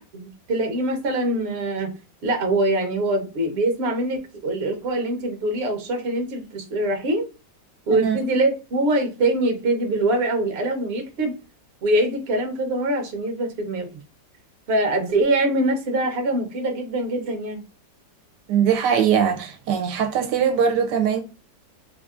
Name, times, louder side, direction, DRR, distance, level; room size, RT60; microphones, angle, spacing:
voice 1, 0.1-1.9 2.2-7.2 7.9-11.3 11.8-13.9 14.7-17.6, right 1 dB, 50° right, 0.8 m, -23 dB
voice 2, 7.9-8.2 18.5-21.2, right 8 dB, 75° right, 1.1 m, -21 dB
3.4 x 2.5 x 2.4 m
omnidirectional pair, 1.9 m